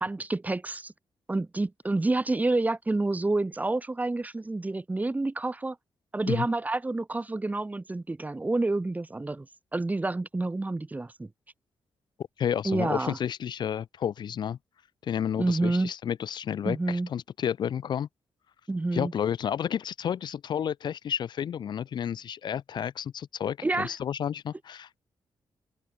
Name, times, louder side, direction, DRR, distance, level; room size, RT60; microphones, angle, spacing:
voice 1, 0.0-0.9 1.3-5.8 6.1-9.5 9.7-11.3 12.6-13.2 15.4-15.9 16.6-17.1 18.7-19.1 23.6-23.9, right 2 dB, 20° right, 1.7 m, -28 dB
voice 2, 12.4-14.6 15.0-18.1 18.9-25.0, left 9 dB, 55° left, 0.4 m, -31 dB
open air
cardioid pair, 110°, 9 cm